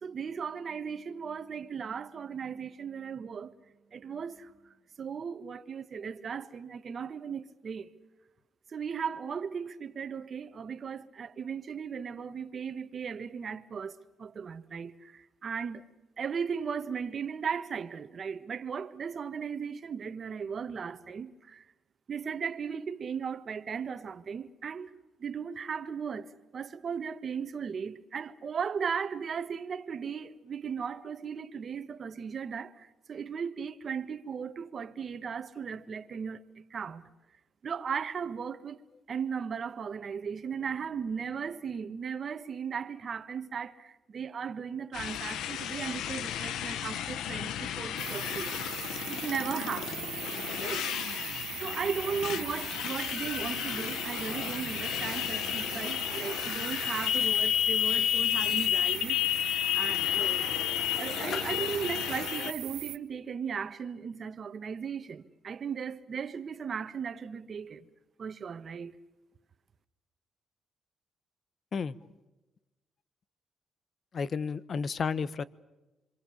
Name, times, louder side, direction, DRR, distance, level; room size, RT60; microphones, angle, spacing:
voice 1, 0.0-3.5 3.9-7.9 8.7-15.9 16.2-21.6 22.1-24.9 25.2-37.0 37.6-38.8 39.1-48.6 49.1-50.1 50.6-50.9 51.6-59.2 59.7-60.5 61.0-67.9 68.2-68.9, right 6 dB, 50° right, 1.4 m, -37 dB
Motorcycle, 44.9-62.5, left 10 dB, 85° left, 1.1 m, -32 dB
sound 1, 48.0-63.0, right 13 dB, 85° right, 1.3 m, -40 dB
voice 2, 74.1-75.4, left 5 dB, 50° left, 1.0 m, -32 dB
26.5 x 25.5 x 7.2 m
cardioid pair, 95°, 0 cm